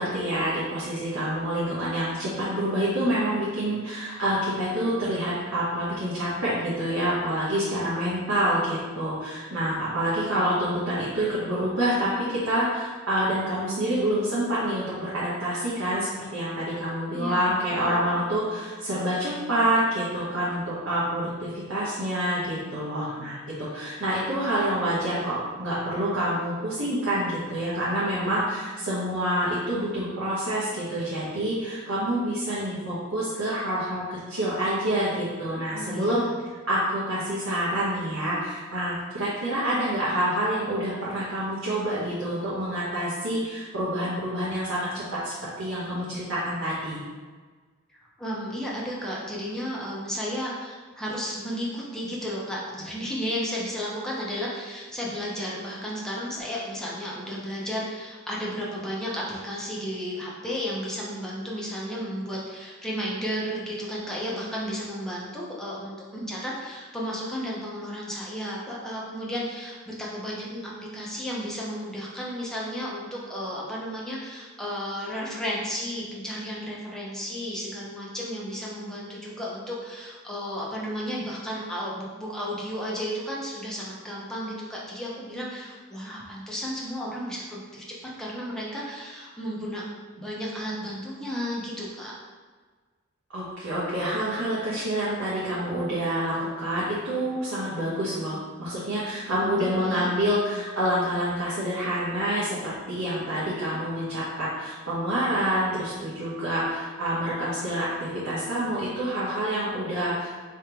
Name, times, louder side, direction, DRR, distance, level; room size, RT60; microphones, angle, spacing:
voice 1, 0.0-36.2 36.7-47.0 93.3-110.3, right 1 dB, 80° right, -9 dB, 1.1 m, -27 dB
voice 2, 17.1-18.0 35.7-36.4 48.2-89.8 90.2-92.1 99.4-100.1, equal, 5° left, -5 dB, 0.8 m, -33 dB
3.5 x 3.2 x 4.5 m, 1.4 s
head